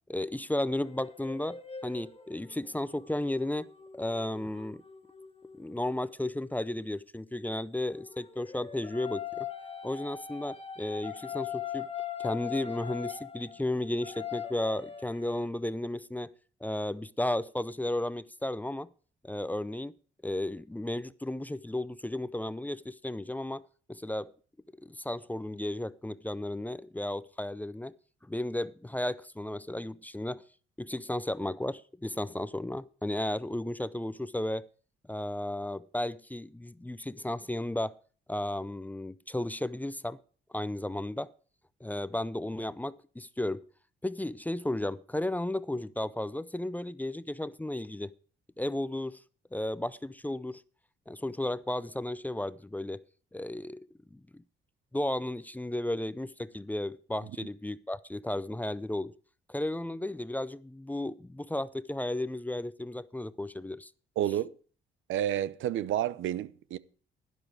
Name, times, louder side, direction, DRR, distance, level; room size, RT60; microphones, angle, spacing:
voice 1, 0.1-1.6 1.8-3.7 3.9-4.8 5.6-9.5 9.8-11.9 12.2-16.3 16.6-18.9 19.2-20.0 20.2-23.6 23.9-24.3 24.8-27.9 28.2-30.4 30.8-34.6 35.1-37.9 38.3-40.2 40.5-41.3 41.8-43.7 44.0-48.1 48.6-49.2 49.5-50.6 51.1-53.0 53.3-54.2 54.9-59.1 59.5-63.9, left 1 dB, 10° left, 0.5 m, -34 dB
sound 1, 0.8-6.0 7.9-15.5, left 9 dB, 30° left, 1.9 m, -41 dB
voice 2, 64.2-64.5 65.1-66.8, right 11 dB, 80° right, 0.7 m, -30 dB
12.0 x 11.0 x 4.8 m
cardioid pair, 90°, 20 cm